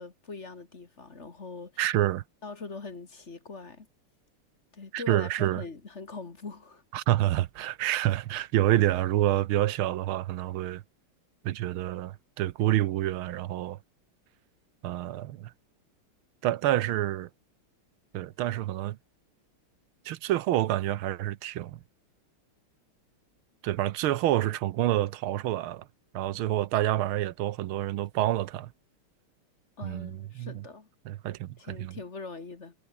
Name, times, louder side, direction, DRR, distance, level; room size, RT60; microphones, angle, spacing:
voice 1, 0.0-1.8 2.4-3.9 4.7-6.8 29.8-30.9 31.6-32.7, left 4 dB, 30° left, 2.1 m, -42 dB
voice 2, 1.8-2.2 4.9-5.6 6.9-10.8 11.4-13.8 14.8-15.5 16.4-17.3 18.1-19.0 20.0-21.8 23.6-25.8 26.1-28.7 29.8-30.5 31.0-31.9, right 14 dB, 75° right, 1.6 m, -28 dB
omnidirectional pair, 2.4 m